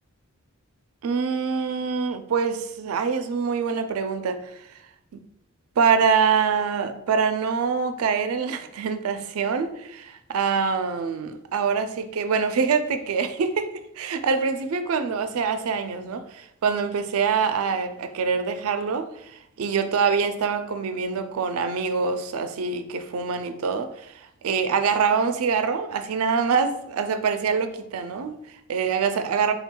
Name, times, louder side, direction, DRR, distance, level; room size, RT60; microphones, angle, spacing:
voice 1, 1.0-4.7 5.1-5.2 5.8-29.5, right 5 dB, 85° right, 0.4 m, -25 dB
4.4 x 3.7 x 2.2 m
head